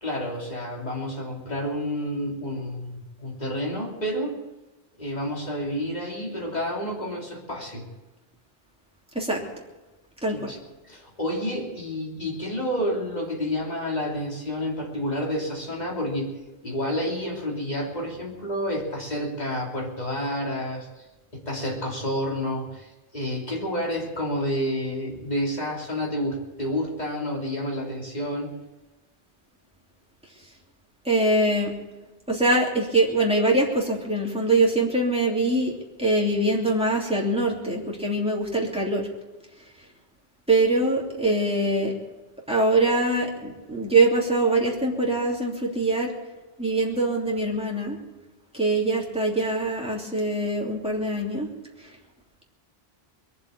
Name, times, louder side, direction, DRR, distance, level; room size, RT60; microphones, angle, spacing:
voice 1, 0.0-4.4 5.0-7.9 10.3-10.6 10.9-16.4 16.6-20.9 21.3-28.5, equal, 40° left, -1 dB, 3.1 m, -29 dB
voice 2, 10.2-10.5 31.0-31.7 32.3-35.7 36.0-39.1 40.5-41.9 42.5-46.1 46.6-48.0 48.5-51.5 51.8-51.9, right 2 dB, 5° right, -3 dB, 3.0 m, -23 dB
22.0 x 7.5 x 8.4 m, 1.1 s
omnidirectional pair, 1.1 m